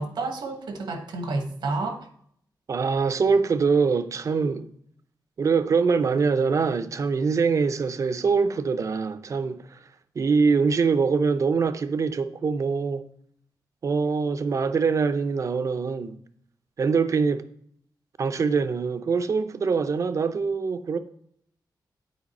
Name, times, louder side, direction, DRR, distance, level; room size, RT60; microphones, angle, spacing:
voice 1, 0.0-2.1, right 3 dB, 80° right, 1.1 m, -30 dB
voice 2, 2.7-4.7 5.4-9.8 10.2-13.0 13.8-16.2 16.8-17.4 18.2-21.0, right 5 dB, 45° right, 0.5 m, -23 dB
8.4 x 4.6 x 4.2 m
wide cardioid pair, 155°, 8 cm